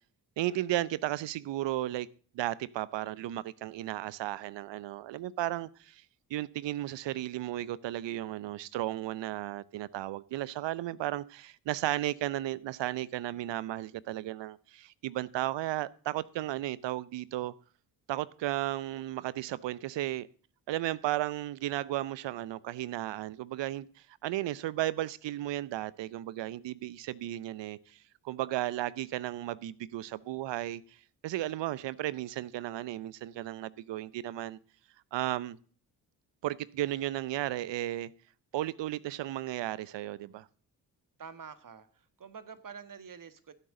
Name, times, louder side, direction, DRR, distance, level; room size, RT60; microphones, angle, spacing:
voice 1, 0.4-2.1 2.3-6.0 6.3-17.5 18.1-20.3 20.7-23.9 24.2-28.0 28.2-30.8 31.2-34.6 35.1-35.6 36.4-38.1 38.5-40.5, right 14 dB, 70° right, 0.7 m, -34 dB
voice 2, 41.2-43.5, right 6 dB, 45° right, 1.6 m, -47 dB
15.5 x 8.1 x 3.8 m
supercardioid pair, 50°, 45 cm